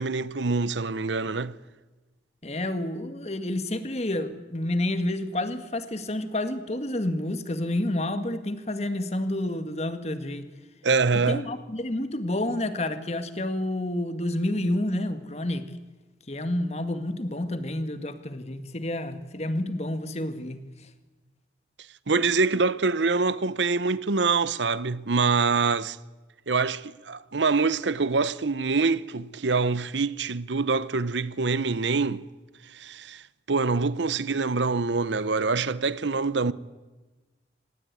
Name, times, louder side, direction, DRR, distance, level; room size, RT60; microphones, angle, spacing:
voice 1, 0.0-1.6 10.8-11.5 22.1-26.0 26.5-32.2 32.7-33.2 33.5-36.5, right 4 dB, 80° right, 0.9 m, -25 dB
voice 2, 2.4-10.5 11.3-15.7 16.3-20.9, left 1 dB, 35° left, 1.8 m, -29 dB
25.5 x 19.0 x 9.6 m
head